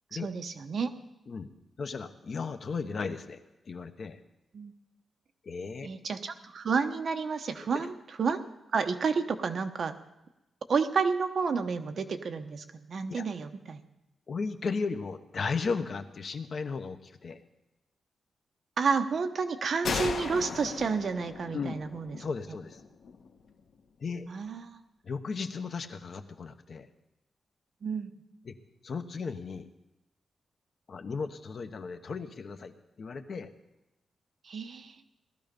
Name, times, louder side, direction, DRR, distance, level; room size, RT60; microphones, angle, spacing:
voice 1, 0.2-0.9 4.5-4.7 5.8-7.9 8.2-8.4 8.7-9.9 10.7-13.8 18.8-22.2 24.3-24.7 27.8-28.1 34.4-34.9, right 5 dB, 50° right, 7 dB, 1.0 m, -30 dB
voice 2, 1.8-3.4 3.7-4.2 5.4-5.9 7.7-7.9 13.1-13.2 14.3-17.4 21.5-21.8 22.2-22.8 24.0-24.3 25.0-26.9 28.4-28.5 28.8-29.7 30.9-33.5, left 4 dB, 45° left, 8 dB, 1.0 m, -35 dB
sound 1, 19.8-23.4, left 5 dB, 65° left, 1.2 m, -37 dB
18.5 x 12.5 x 5.3 m, 0.95 s
wide cardioid pair, 155°, 0 cm